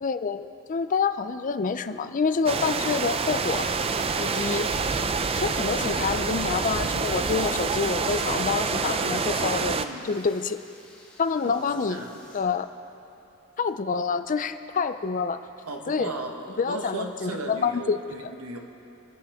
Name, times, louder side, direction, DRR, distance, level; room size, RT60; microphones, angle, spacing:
voice 1, 0.0-3.7 4.2-4.7 5.4-9.8 10.0-10.6 11.2-12.0 12.3-12.7 13.6-15.4 15.9-16.1 16.6-18.3, left 5 dB, 35° left, 11 dB, 0.4 m, -27 dB
sound 1, 2.5-9.9, right 4 dB, 25° right, 0.4 m, -27 dB
sound 2, 3.0-12.4, left 2 dB, 5° left, 1.9 m, -53 dB
voice 2, 9.8-10.1 11.4-12.2 15.6-18.6, right 2 dB, 75° right, 3 dB, 1.4 m, -36 dB
27.5 x 10.5 x 3.6 m, 2.9 s
head